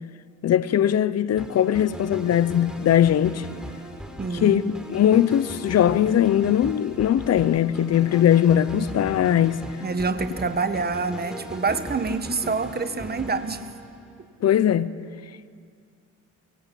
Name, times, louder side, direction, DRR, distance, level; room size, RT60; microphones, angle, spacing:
voice 1, 0.4-3.5 4.4-9.6 14.4-14.9, left 10 dB, 55° left, 0.8 m, -20 dB
sound 1, 1.4-14.3, right 1 dB, 5° right, 3.9 m, -39 dB
voice 2, 4.2-4.7 9.8-13.7, right 4 dB, 30° right, 1.5 m, -27 dB
24.0 x 23.5 x 8.4 m
cardioid pair, 90°, 30 cm